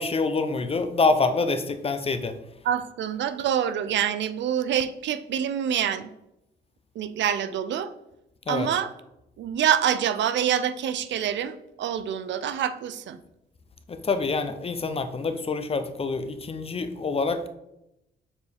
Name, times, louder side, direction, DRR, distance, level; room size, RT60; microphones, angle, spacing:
voice 1, 0.0-2.3 8.5-8.7 13.9-17.4, left 3 dB, 30° left, 9 dB, 0.7 m, -26 dB
voice 2, 2.6-6.1 7.0-7.9 8.5-8.9 9.4-13.2, right 9 dB, 65° right, 12 dB, 0.5 m, -26 dB
6.9 x 4.5 x 3.5 m, 0.86 s
cardioid pair, 90°, 20 cm